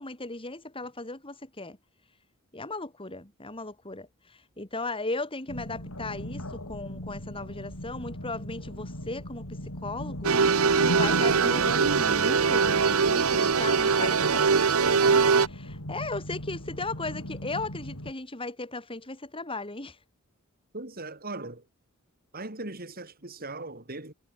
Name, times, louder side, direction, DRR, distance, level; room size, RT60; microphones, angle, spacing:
voice 1, 0.0-1.8 2.5-4.1 4.6-10.3 10.8-20.0, left 2 dB, 25° left, 3.7 m, -37 dB
sound 1, 5.5-18.1, left 1 dB, 75° left, 6.6 m, -37 dB
sound 2, 10.2-15.5, right 5 dB, 80° right, 0.9 m, -22 dB
voice 2, 11.3-11.6 20.7-21.6 22.3-24.1, right 2 dB, 45° right, 5.1 m, -39 dB
head